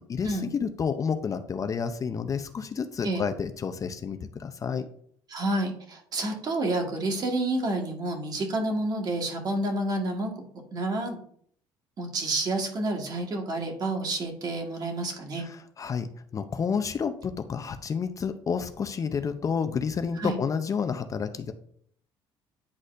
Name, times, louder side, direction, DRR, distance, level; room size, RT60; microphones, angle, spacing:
voice 1, 0.1-4.9 15.4-21.5, left 6 dB, 35° left, 9 dB, 0.5 m, -30 dB
voice 2, 5.3-10.3 10.7-11.2 12.0-15.4 20.2-20.4, right 2 dB, 45° right, 2 dB, 1.6 m, -29 dB
9.7 x 4.1 x 2.5 m, 0.62 s
cardioid pair, 95°, 9 cm